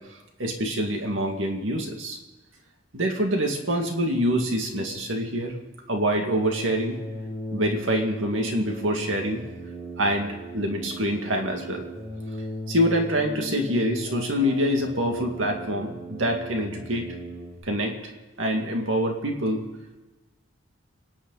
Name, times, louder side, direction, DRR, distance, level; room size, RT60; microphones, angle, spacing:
voice 1, 0.4-2.2 2.9-5.6 5.9-7.0 7.5-9.4 10.0-11.8 12.7-17.1 17.6-18.1 18.4-19.6, equal, 75° right, 2 dB, 2.3 m, -25 dB
sound 1, 6.3-17.6, equal, 20° right, 5.4 m, -37 dB
28.5 x 10.0 x 4.1 m, 1.2 s
head